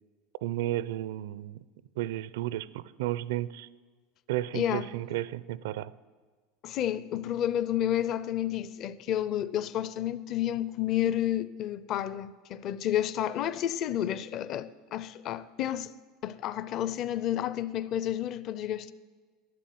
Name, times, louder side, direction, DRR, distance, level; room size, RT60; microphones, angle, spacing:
voice 1, 0.4-1.6 2.0-3.7 4.3-5.9, right 14 dB, 85° right, 0.5 m, -33 dB
voice 2, 4.5-4.9 6.6-15.9 16.2-18.9, left 11 dB, 35° left, 0.5 m, -30 dB
11.5 x 11.0 x 9.3 m
cardioid pair, 170°, 0 cm